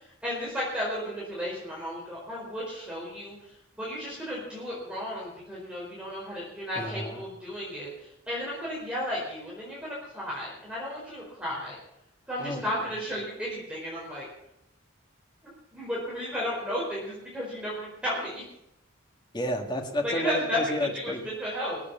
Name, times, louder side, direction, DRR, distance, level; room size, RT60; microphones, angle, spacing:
voice 1, 0.2-3.4 3.8-7.9 8.3-11.8 12.3-14.2 15.7-18.4 20.0-20.6 20.9-21.8, left 1 dB, 5° right, -6 dB, 4.8 m, -33 dB
voice 2, 6.8-7.3 12.4-12.6 19.3-21.2, equal, 20° left, 4 dB, 1.9 m, -31 dB
20.5 x 8.4 x 7.2 m, 0.81 s
head